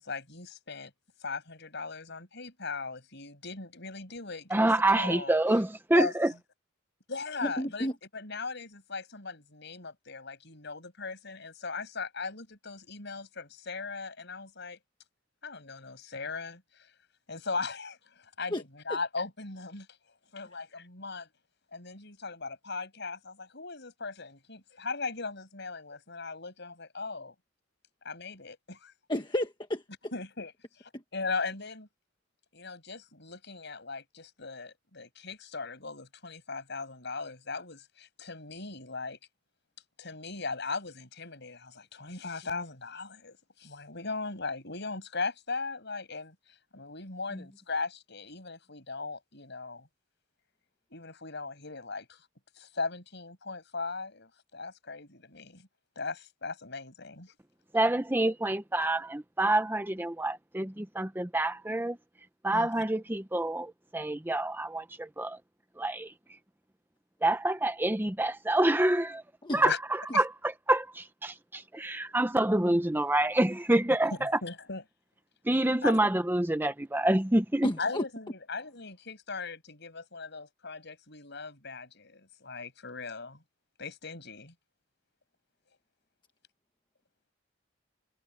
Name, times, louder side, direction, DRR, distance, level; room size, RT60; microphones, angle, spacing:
voice 1, 0.0-0.9 1.2-5.3 5.9-6.1 7.1-7.9 8.1-14.8 15.4-16.9 17.3-19.9 20.3-21.3 21.7-27.3 28.0-28.9 30.1-30.5 30.8-31.9 32.5-39.2 40.0-46.4 46.7-49.9 50.9-52.3 52.6-55.7 56.0-57.3 62.5-62.7 69.5-69.8 70.1-70.2 74.2-74.8 75.8-76.0 77.8-83.4 83.8-84.5, left 4 dB, 60° left, 7.9 m, -38 dB
voice 2, 4.5-6.3 57.7-62.0 62.4-65.4 65.8-66.1 67.2-69.2 69.5-70.3 70.7-74.3 75.4-77.7, right 1 dB, 10° right, 0.8 m, -27 dB
voice 3, 7.4-7.9 18.5-18.6 29.1-29.8 30.9-31.0 47.3-47.4 69.4-69.6 77.6-78.0, left 1 dB, 25° left, 1.3 m, -31 dB
head